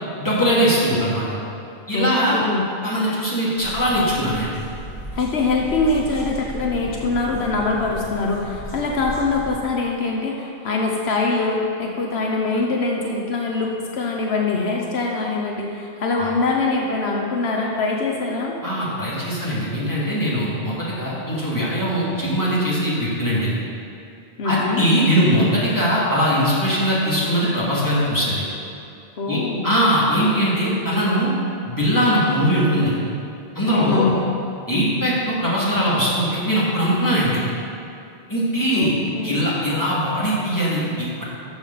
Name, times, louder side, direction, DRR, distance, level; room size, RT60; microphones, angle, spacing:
voice 1, 0.2-1.3 1.9-2.4 2.8-4.5 16.2-16.3 18.6-23.6 24.4-28.4 29.3-29.4 29.6-31.3 31.6-33.0 33.5-34.0 34.7-37.4 38.3-38.9 39.2-41.2, equal, 20° left, -8 dB, 2.5 m, -21 dB
voice 2, 1.9-2.7 5.1-18.5 24.4-24.9 29.2-29.8 33.7-34.3 38.7-39.4, left 3 dB, 75° left, 0 dB, 1.1 m, -23 dB
sound 1, 3.5-9.6, right 1 dB, 60° left, 2.7 m, -35 dB
12.5 x 7.0 x 4.1 m, 2.6 s
omnidirectional pair, 1.1 m